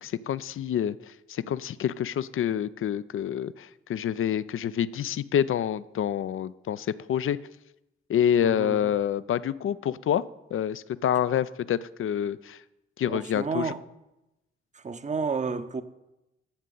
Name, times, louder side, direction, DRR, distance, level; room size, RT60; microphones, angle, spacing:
voice 1, 0.0-1.0 1.3-7.4 8.1-10.2 10.5-12.6 13.0-13.7, left 9 dB, 45° left, 0.5 m, -27 dB
voice 2, 8.4-8.9 13.1-13.8 14.7-15.8, right 4 dB, 25° right, 0.8 m, -31 dB
12.5 x 7.3 x 4.0 m
hypercardioid pair, 40°, 30 cm